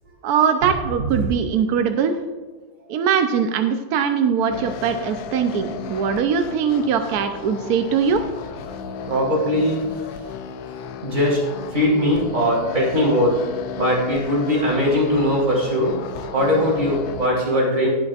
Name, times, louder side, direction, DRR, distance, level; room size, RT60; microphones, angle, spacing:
voice 1, 0.2-2.1 2.9-8.2, right 7 dB, 70° right, 6 dB, 0.9 m, -21 dB
sound 1, 4.5-17.3, left 6 dB, 75° left, 1.4 m, -34 dB
voice 2, 9.0-9.9 11.0-11.4 11.7-13.4 13.8-16.0 16.3-17.9, equal, 40° right, -5 dB, 4.0 m, -20 dB
19.0 x 7.9 x 2.5 m, 1.4 s
omnidirectional pair, 2.2 m